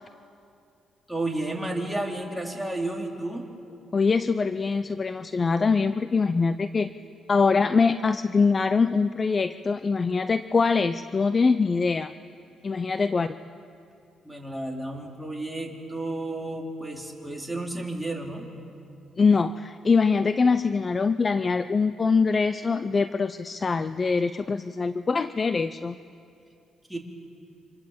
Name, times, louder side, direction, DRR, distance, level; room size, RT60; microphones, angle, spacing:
voice 1, 1.1-3.4 14.2-18.5 26.9-27.0, right 2 dB, ahead, -1 dB, 4.4 m, -32 dB
voice 2, 3.9-6.9 7.3-12.1 12.6-13.3 19.2-26.0, left 4 dB, 35° left, 12 dB, 0.6 m, -23 dB
29.0 x 26.5 x 7.9 m, 2.6 s
cardioid pair, 90°, 0 cm